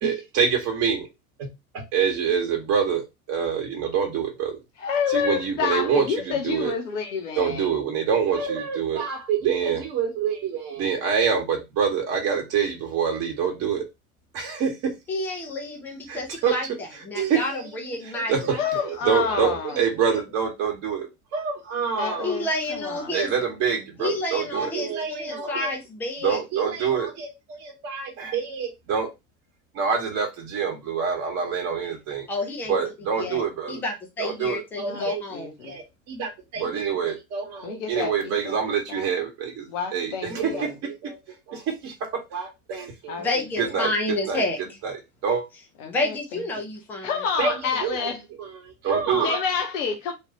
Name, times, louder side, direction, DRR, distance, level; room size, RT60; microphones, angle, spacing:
voice 1, 0.0-1.1 1.4-4.6 5.1-6.7 7.4-13.8 14.3-14.9 16.1-16.5 17.1-17.7 18.1-22.4 23.1-25.7 26.2-29.1 29.7-32.3 32.7-33.8 34.2-35.2 35.6-41.2 41.5-43.3 43.6-43.9 44.3-44.4 44.8-44.9 45.2-45.4 47.4-48.1 48.4-49.4, right 6 dB, 35° right, 1.1 m, -26 dB
voice 2, 4.8-7.7 18.6-19.8 22.0-23.2 34.9-35.8 37.6-38.6 38.9-39.1 39.7-40.7 43.1-43.7 45.8-46.4 47.0-48.2 49.2-50.1, left 6 dB, 55° left, 0.9 m, -29 dB
voice 3, 15.1-16.7 17.0-18.3 22.2-23.3 24.0-26.4 32.3-32.8 33.2-33.4 33.7-35.5 43.2-44.6 45.9-47.2, left 2 dB, 5° left, 0.3 m, -29 dB
3.3 x 2.3 x 4.1 m
figure-of-eight pair, 80°, 45 cm